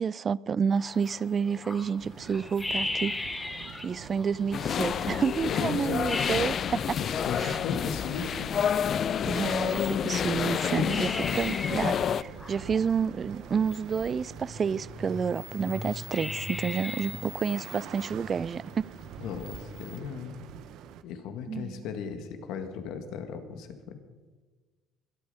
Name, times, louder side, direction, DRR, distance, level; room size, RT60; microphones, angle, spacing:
voice 1, 0.0-3.1 3.8-7.0 7.4-7.6 9.2-18.9 21.5-21.8, right 6 dB, 35° right, 0.3 m, -30 dB
sound 1, 0.7-20.0, left 2 dB, 15° left, 2.3 m, -40 dB
sound 2, 2.0-21.0, right 10 dB, 70° right, 0.8 m, -46 dB
sound 3, 4.5-12.2, left 8 dB, 45° left, 0.3 m, -29 dB
voice 2, 5.5-6.1 7.0-8.6 19.2-20.4 21.0-24.0, left 6 dB, 75° left, 1.8 m, -37 dB
22.5 x 8.8 x 5.6 m
cardioid pair, 100°, 0 cm